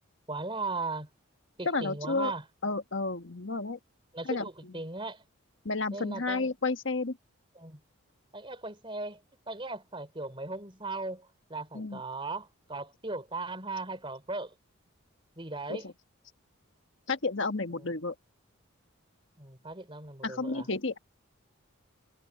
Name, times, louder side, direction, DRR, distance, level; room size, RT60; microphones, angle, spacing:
voice 1, 0.3-1.1 1.6-2.4 4.1-5.2 5.9-6.5 7.6-7.8 8.3-14.5 15.4-15.9 17.8-17.9 19.4-20.7, right 3 dB, 25° right, 3.8 m, -38 dB
voice 2, 1.6-2.3 2.6-3.8 4.3-4.5 5.6-7.2 11.7-12.0 15.7-15.9 17.1-18.1 20.2-21.0, left 3 dB, 60° left, 1.5 m, -31 dB
head